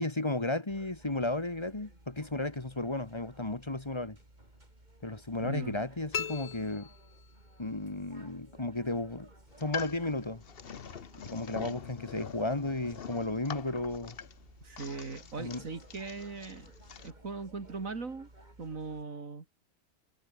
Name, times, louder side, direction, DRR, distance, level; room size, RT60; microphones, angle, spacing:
voice 1, 0.0-4.2 5.0-6.9 7.6-9.3 9.6-10.4 11.2-14.2 15.4-15.6, left 2 dB, 20° left, 1.6 m, -34 dB
sound 1, 0.7-19.0, right 1 dB, 35° right, 5.5 m, -57 dB
voice 2, 5.4-5.8 14.6-16.7 17.0-18.3 18.6-19.4, right 4 dB, 80° right, 3.0 m, -39 dB
sound 2, 6.1-7.7, left 8 dB, 70° left, 0.3 m, -39 dB
sound 3, 9.5-17.1, left 7 dB, 50° left, 1.1 m, -45 dB
omnidirectional pair, 1.4 m